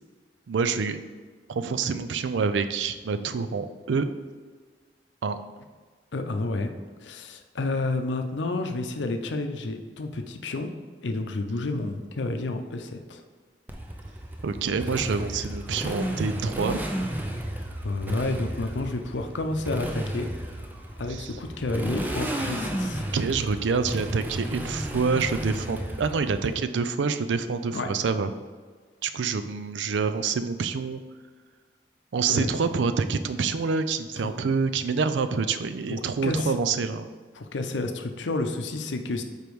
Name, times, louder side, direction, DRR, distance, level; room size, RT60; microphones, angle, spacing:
voice 1, 0.5-1.0 1.5-4.1 5.2-5.4 14.4-16.8 21.1-21.4 23.1-28.3 29.0-31.0 32.1-37.1, right 5 dB, 85° right, 10 dB, 0.4 m, -27 dB
voice 2, 6.1-6.7 7.0-10.7 11.0-13.2 17.8-20.3 21.0-23.0 27.7-27.9 32.3-32.5 34.2-34.3 35.9-36.5 37.4-39.2, left 2 dB, 85° left, 6 dB, 0.6 m, -30 dB
Motorcycle, 13.7-26.5, right 1 dB, 10° right, 0.5 m, -33 dB
5.2 x 4.5 x 4.7 m, 1.5 s
head